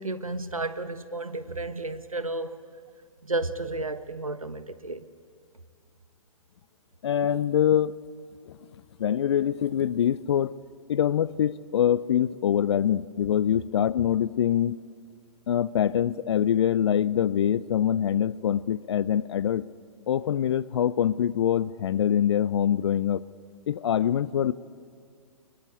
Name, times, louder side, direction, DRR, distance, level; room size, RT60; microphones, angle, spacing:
voice 1, 0.0-2.6 3.2-5.0, right 2 dB, 85° right, 13 dB, 1.1 m, -32 dB
voice 2, 7.0-7.9 9.0-10.5 10.9-14.8 15.5-19.6 20.1-23.2 23.7-24.5, left 9 dB, 50° left, 20 dB, 0.5 m, -24 dB
25.0 x 22.0 x 8.5 m, 2.3 s
figure-of-eight pair, 115°, 17 cm